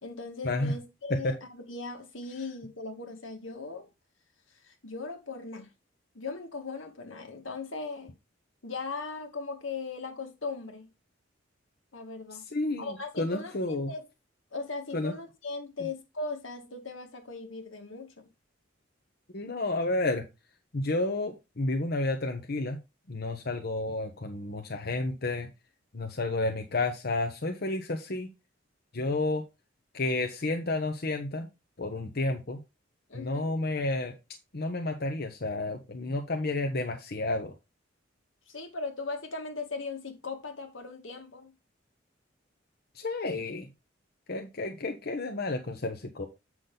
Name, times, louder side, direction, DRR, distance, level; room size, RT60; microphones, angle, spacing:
voice 1, 0.0-3.9 4.6-5.7 6.1-8.1 8.6-10.9 11.9-12.4 12.8-14.1 14.5-18.3 33.1-33.5 38.5-41.5, left 3 dB, 85° left, 2.0 m, -38 dB
voice 2, 12.5-13.9 14.9-15.1 19.3-20.2 20.7-22.8 23.1-25.5 25.9-28.3 28.9-29.4 29.9-31.5 31.8-32.6 33.1-34.1 34.5-37.5 43.0-43.7 44.3-46.3, left 2 dB, 55° left, 1.0 m, -31 dB
8.0 x 6.2 x 3.9 m
head